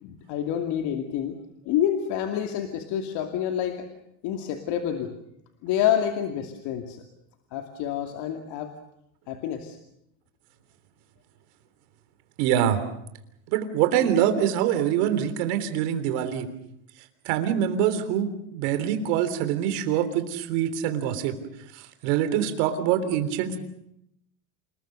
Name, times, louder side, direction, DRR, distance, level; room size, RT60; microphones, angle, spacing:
voice 1, 0.0-1.4 1.6-3.9 4.2-5.1 5.6-7.0 7.5-8.7 9.3-9.8, left 10 dB, 55° left, 4 dB, 2.6 m, -28 dB
voice 2, 12.4-12.8 13.5-16.5 17.3-21.4 21.7-23.6, right 10 dB, 65° right, 9 dB, 3.6 m, -24 dB
28.0 x 20.5 x 6.6 m, 0.78 s
supercardioid pair, 130°, 50 cm